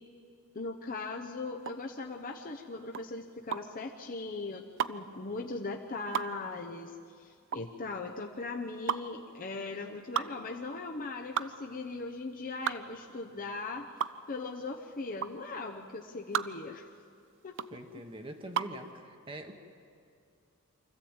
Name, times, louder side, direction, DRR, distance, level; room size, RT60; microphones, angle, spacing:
voice 1, 0.5-6.9 7.2-13.9 14.3-16.8 17.4-17.5, left 3 dB, 40° left, 2 dB, 0.9 m, -39 dB
sound 1, 1.6-18.8, right 8 dB, 60° right, 0.5 m, -37 dB
voice 2, 17.7-19.5, right 1 dB, 25° right, 4 dB, 1.1 m, -44 dB
24.0 x 14.5 x 8.8 m, 2.4 s
head